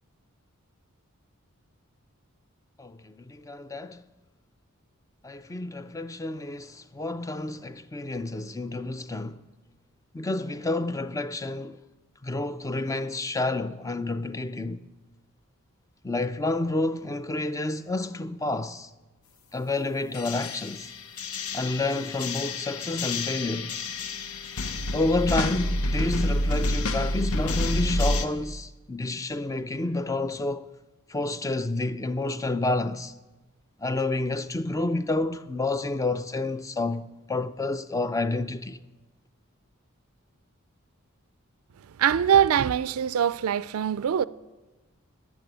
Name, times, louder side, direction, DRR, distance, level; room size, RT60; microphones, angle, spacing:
voice 1, 2.8-4.0 5.2-9.4 10.1-11.8 12.2-14.8 16.0-18.9 19.5-20.9 21.5-23.8 24.9-30.7 31.1-33.1 33.8-38.8, left 2 dB, 15° left, 0.4 m, -29 dB
sound 1, 20.1-28.3, left 1 dB, 85° left, 0.9 m, -29 dB
voice 2, 41.9-44.3, right 9 dB, 80° right, 0.4 m, -23 dB
13.0 x 8.7 x 9.1 m
head